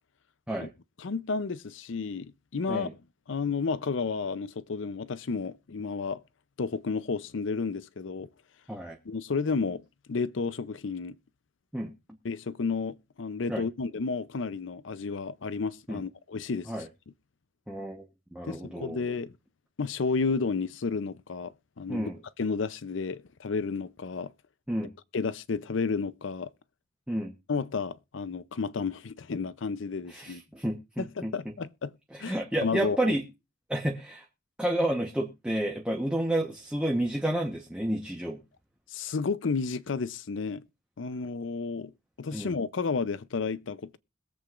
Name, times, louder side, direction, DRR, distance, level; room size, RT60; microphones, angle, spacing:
voice 1, 1.0-2.9 3.3-6.2 6.6-8.3 9.0-9.8 10.1-11.2 12.2-16.7 18.5-19.3 19.8-22.1 22.4-24.3 25.1-26.5 27.5-30.4 31.0-31.9 32.2-33.1 38.9-40.6 41.0-41.9 42.2-44.0, left 4 dB, 70° left, 0.6 m, -32 dB
voice 2, 17.7-18.0 18.3-19.0 21.9-22.2 24.7-24.9 27.1-27.3 30.1-31.3 32.1-33.2 33.7-34.2 34.6-38.4 42.3-42.5, right 1 dB, 5° right, 1.0 m, -30 dB
21.5 x 7.9 x 2.5 m
head